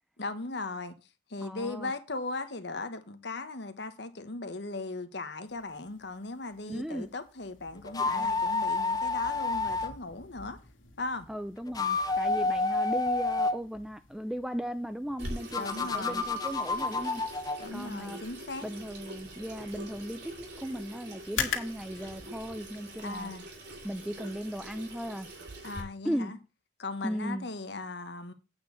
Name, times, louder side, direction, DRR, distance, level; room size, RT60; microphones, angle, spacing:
voice 1, 0.2-0.9 1.3-10.6 11.0-11.3 15.6-16.2 17.6-18.7 23.0-23.4 25.6-26.4 26.8-28.3, left 3 dB, 60° left, 1.2 m, -38 dB
voice 2, 1.4-1.9 6.7-7.1 8.0-8.4 11.3-17.2 17.7-18.2 18.6-23.3 23.8-25.3 26.0-26.4 27.0-27.5, equal, 5° right, 0.4 m, -37 dB
sound 1, 5.4-22.8, left 7 dB, 90° left, 2.1 m, -45 dB
sound 2, 7.9-9.9 11.6-13.6 15.5-17.7, left 3 dB, 20° left, 0.7 m, -29 dB
Water tap faucet / Sink (filling or washing), 15.2-25.8, right 1 dB, 60° right, 3.1 m, -44 dB
8.7 x 4.5 x 6.9 m
head